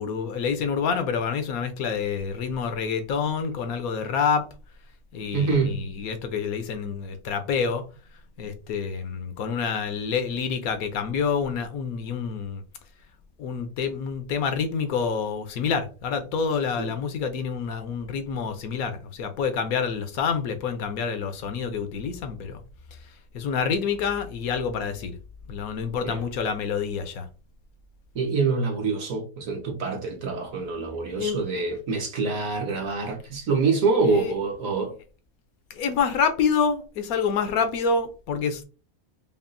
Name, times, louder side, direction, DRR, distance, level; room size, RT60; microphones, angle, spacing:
voice 1, 0.0-4.5 5.1-7.8 8.4-12.6 13.4-22.6 23.3-25.2 25.5-27.3 31.1-31.4 34.1-34.3 35.7-38.6, left 6 dB, 80° left, 1.1 m, -27 dB
voice 2, 5.3-5.8 16.8-16.9 26.0-26.2 28.1-34.9, right 4 dB, 65° right, 1.5 m, -25 dB
5.3 x 2.4 x 2.6 m
omnidirectional pair, 1.5 m